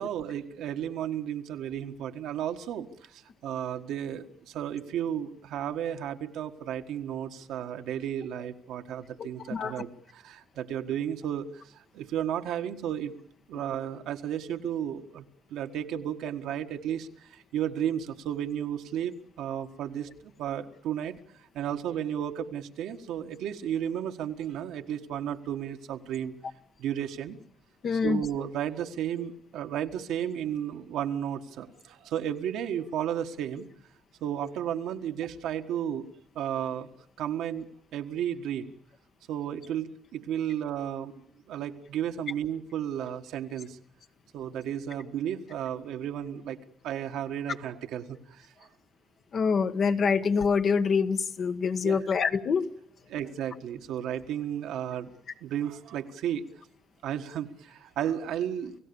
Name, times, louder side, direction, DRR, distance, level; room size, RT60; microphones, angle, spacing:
voice 1, 0.0-13.1 13.5-15.2 15.5-26.3 26.8-27.4 28.0-33.7 34.2-36.9 37.2-38.7 39.3-43.8 44.3-46.6 46.8-48.7 51.8-52.0 53.1-55.1 55.4-56.4 57.0-58.8, right 10 dB, 85° right, 5 dB, 1.6 m, -33 dB
voice 2, 9.2-9.7 27.8-28.2 49.3-52.7, left 5 dB, 55° left, 9 dB, 1.4 m, -26 dB
29.5 x 17.0 x 7.0 m, 0.65 s
cardioid pair, 90°, 0 cm